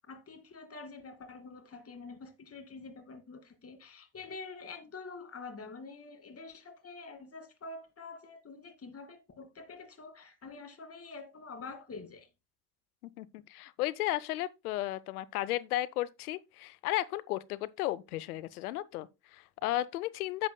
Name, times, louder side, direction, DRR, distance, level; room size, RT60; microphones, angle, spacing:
voice 1, 0.1-12.3, left 4 dB, 30° left, 2.3 m, -47 dB
voice 2, 13.2-20.5, left 15 dB, 85° left, 0.7 m, -34 dB
11.0 x 8.0 x 2.2 m
hypercardioid pair, 70°, 44 cm